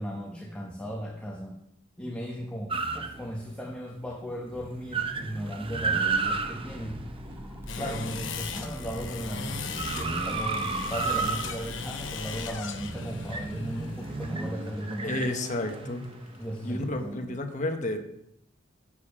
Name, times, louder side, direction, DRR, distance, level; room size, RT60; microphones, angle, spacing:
voice 1, 0.0-1.6 2.0-7.0 7.8-15.3 16.4-17.3, equal, 5° left, -1 dB, 1.0 m, -36 dB
sound 1, 2.7-3.7 4.1-4.2 4.4-8.0 8.5-17.0, right 4 dB, 25° right, 0.7 m, -33 dB
sound 2, 6.0-12.6, equal, 10° right, 1.6 m, -42 dB
sound 3, 7.7-16.9, left 6 dB, 65° left, 1.0 m, -40 dB
voice 2, 7.8-8.1 15.0-16.0 16.6-18.0, left 1 dB, 40° left, 6 dB, 1.1 m, -31 dB
9.5 x 7.3 x 4.9 m, 0.79 s
head